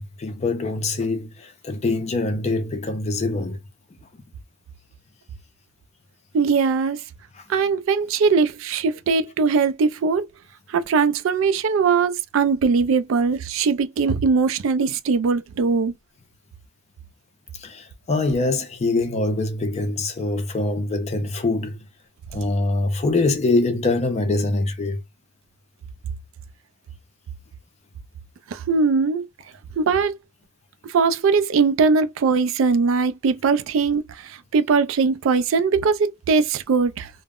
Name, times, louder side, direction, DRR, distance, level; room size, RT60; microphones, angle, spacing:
voice 1, 0.0-3.6 7.4-7.5 17.5-21.8 22.3-25.0, left 2 dB, 30° left, 0.4 m, -24 dB
voice 2, 6.3-7.0 7.5-10.3 10.7-15.9 28.5-29.2 29.8-30.2 30.8-37.1, right 5 dB, 65° right, 0.3 m, -20 dB
2.0 x 2.0 x 3.5 m
head